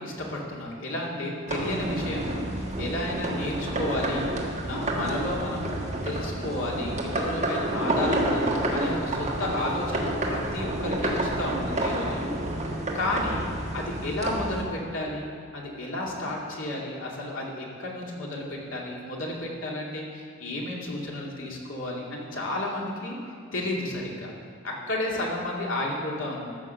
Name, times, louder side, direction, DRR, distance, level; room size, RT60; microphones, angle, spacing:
voice 1, 0.0-4.3 4.7-12.2 12.9-13.4 13.7-15.3 15.5-23.2 23.5-24.3 24.6-26.4, left 1 dB, 90° left, -3 dB, 2.3 m, -32 dB
sound 1, 1.5-14.6, right 1 dB, 35° right, 1.5 m, -29 dB
14.0 x 6.1 x 6.9 m, 2.3 s
head